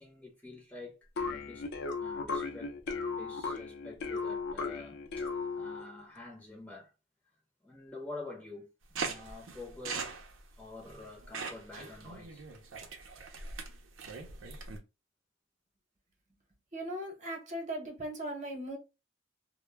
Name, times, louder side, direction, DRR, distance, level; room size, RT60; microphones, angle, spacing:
voice 1, 0.0-1.7 2.0-2.8 3.1-6.9 7.6-10.1 10.6-12.5, left 2 dB, 10° left, 0.6 m, -48 dB
sound 1, 1.2-6.0, left 4 dB, 60° left, 0.5 m, -36 dB
sound 2, 9.0-14.8, right 4 dB, 75° right, 0.5 m, -41 dB
voice 2, 16.7-18.8, right 1 dB, 40° right, 0.9 m, -38 dB
2.1 x 2.1 x 3.2 m
head